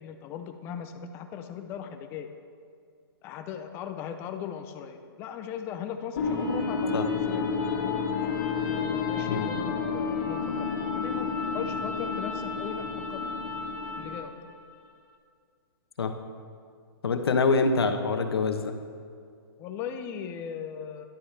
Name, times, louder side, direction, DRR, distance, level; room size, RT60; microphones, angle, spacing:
voice 1, 0.0-2.3 3.2-7.5 7.7-8.0 8.6-11.3 11.5-13.5 14.0-14.3 19.6-21.1, left 8 dB, 20° left, 7 dB, 0.5 m, -38 dB
sound 1, 6.2-14.3, left 5 dB, 45° left, 1.9 m, -30 dB
voice 2, 17.0-18.7, left 4 dB, 85° left, 7 dB, 1.0 m, -25 dB
13.0 x 10.5 x 3.3 m, 2.3 s
hypercardioid pair, 155°, 13 cm